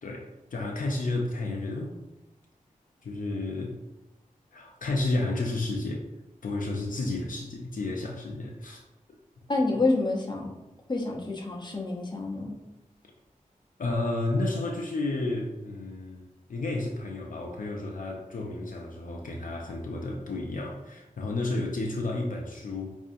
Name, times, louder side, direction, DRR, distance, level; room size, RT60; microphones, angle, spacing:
voice 1, 0.0-2.0 3.0-3.8 4.5-6.1 6.4-8.8 13.8-23.0, left 2 dB, 70° left, 0 dB, 0.5 m, -31 dB
voice 2, 9.5-10.5 10.9-12.6, left 2 dB, 30° left, -1 dB, 0.8 m, -28 dB
5.3 x 2.6 x 2.6 m, 0.95 s
wide cardioid pair, 75°, 14 cm